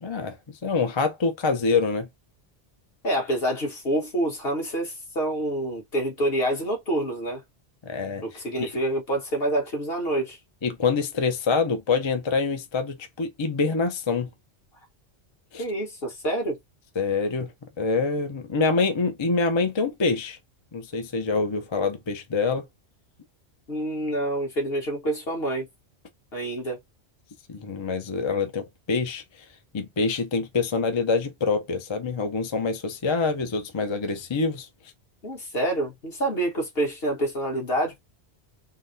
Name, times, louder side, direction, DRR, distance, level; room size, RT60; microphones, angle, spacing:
voice 1, 0.0-2.1 7.8-8.7 10.6-14.3 15.5-15.6 17.0-17.5 17.8-20.4 20.7-22.7 27.5-29.4 29.7-34.7, left 4 dB, 35° left, 0.5 m, -26 dB
voice 2, 3.0-7.4 8.2-10.4 15.6-16.6 23.7-25.7 26.3-26.8 35.2-38.0, right 1 dB, 60° left, 1.6 m, -27 dB
3.8 x 2.1 x 2.5 m
omnidirectional pair, 1.1 m